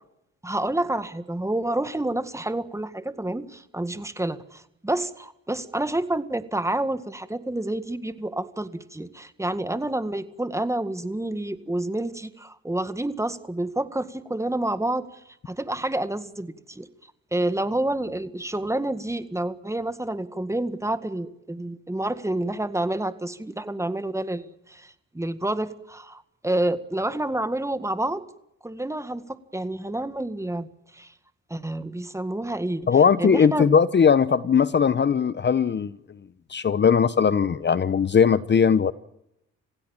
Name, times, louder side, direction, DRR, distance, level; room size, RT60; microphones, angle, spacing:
voice 1, 0.4-15.0 15.5-16.9 17.3-28.2 28.6-30.7 30.9-31.1 31.5-33.7, right 1 dB, 10° right, 1.8 m, -29 dB
voice 2, 32.9-35.9 36.5-38.9, left 6 dB, 35° left, 1.0 m, -19 dB
27.0 x 16.5 x 8.9 m
cardioid pair, 90°, 30 cm